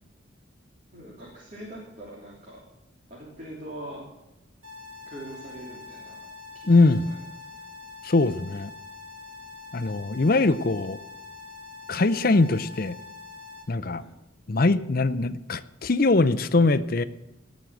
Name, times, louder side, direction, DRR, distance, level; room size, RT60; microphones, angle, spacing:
voice 1, 0.9-2.6 3.1-4.0 5.1-6.2 6.5-6.7 7.0-7.7 14.0-14.1, right 1 dB, 40° right, -5 dB, 3.4 m, -42 dB
sound 1, 4.6-13.6, left 4 dB, 75° right, 2.9 m, -44 dB
voice 2, 6.7-7.1 8.0-8.7 9.7-11.0 11.9-13.0 13.7-14.0 14.5-17.0, left 3 dB, 50° left, 14 dB, 0.6 m, -22 dB
19.0 x 6.3 x 7.8 m, 0.95 s
head